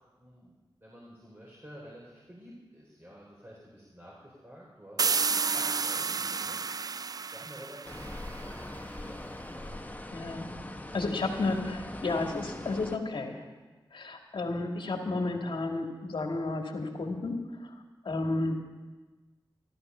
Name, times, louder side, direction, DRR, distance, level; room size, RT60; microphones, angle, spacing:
voice 1, 0.0-5.1 5.5-6.7 7.3-9.7, equal, 25° right, -5 dB, 4.1 m, -50 dB
sound 1, 5.0-8.6, right 5 dB, 45° right, 0.4 m, -31 dB
sound 2, 7.8-13.0, left 1 dB, 15° left, 1.0 m, -42 dB
voice 2, 10.1-10.6 10.9-13.4 13.9-17.7 18.0-18.6, left 2 dB, 65° left, 3 dB, 2.0 m, -32 dB
13.5 x 13.0 x 5.6 m, 1.3 s
cardioid pair, 45°, 9 cm